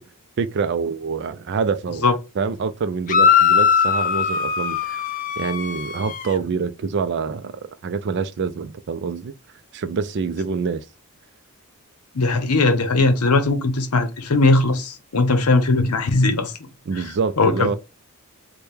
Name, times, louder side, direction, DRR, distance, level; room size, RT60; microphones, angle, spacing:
voice 1, 0.4-2.1 2.4-5.0 5.4-9.3 9.7-10.8 16.9-17.8, right 5 dB, 50° right, 0.4 m, -26 dB
sound 1, 3.1-6.3, left 7 dB, 35° left, 0.4 m, -20 dB
voice 2, 12.1-16.5 17.0-17.1 17.4-17.8, left 3 dB, 75° left, 0.7 m, -19 dB
3.4 x 2.2 x 4.3 m
head